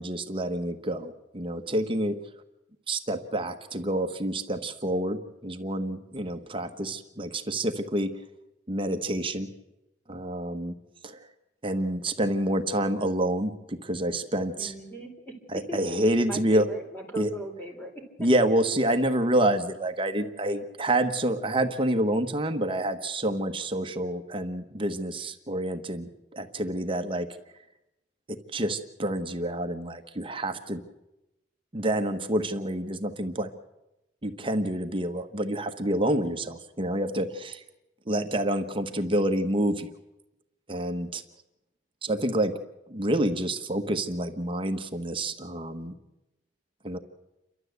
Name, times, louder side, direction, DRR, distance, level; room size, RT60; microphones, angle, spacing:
voice 1, 0.0-2.2 2.9-8.1 8.7-9.5 10.1-10.7 11.0-11.2 11.6-14.7 15.5-16.7 17.2-17.3 18.2-27.3 28.3-30.8 31.7-33.5 34.2-37.6 38.1-39.9 40.7-41.2 42.0-42.5 42.9-45.9 46.8-47.0, right 1 dB, 30° right, 7 dB, 1.2 m, -28 dB
voice 2, 14.6-15.4 15.7-15.8 16.2-18.0, right 1 dB, 10° left, 1 dB, 3.9 m, -38 dB
29.0 x 12.5 x 8.1 m, 0.95 s
head